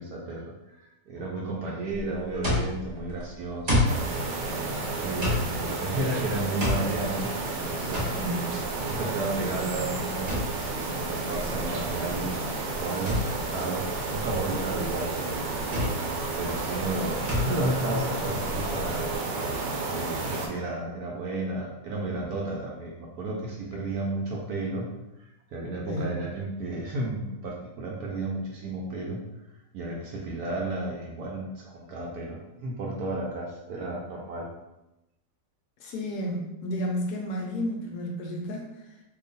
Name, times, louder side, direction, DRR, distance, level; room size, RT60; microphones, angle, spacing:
voice 1, 0.0-4.2 4.6-7.3 7.6-8.1 8.9-15.4 16.4-19.2 19.9-24.9 25.5-29.2 29.7-34.5, right 2 dB, 70° right, -2 dB, 0.9 m, -33 dB
sound 1, 1.9-19.2, left 1 dB, 40° right, 0.7 m, -32 dB
sound 2, 3.9-20.5, right 3 dB, 90° right, 1.4 m, -31 dB
voice 2, 8.1-8.7 25.9-26.2 35.8-38.9, equal, 70° left, 1 dB, 1.0 m, -32 dB
2.9 x 2.3 x 3.9 m, 0.94 s
omnidirectional pair, 1.9 m